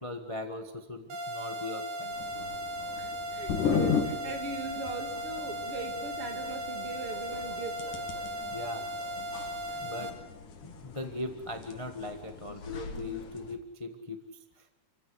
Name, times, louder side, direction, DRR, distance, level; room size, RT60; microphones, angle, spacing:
voice 1, 0.0-2.6 8.5-8.9 9.7-10.1 10.6-14.7, left 2 dB, 20° left, 6 dB, 0.9 m, -40 dB
sound 1, 1.1-10.1, equal, 65° right, 3.7 m, -37 dB
sound 2, 2.1-13.6, left 6 dB, 75° left, 3.7 m, -37 dB
voice 2, 3.0-8.1, right 2 dB, 45° right, 5 dB, 3.5 m, -39 dB
30.0 x 15.5 x 8.0 m, 0.97 s
omnidirectional pair, 3.7 m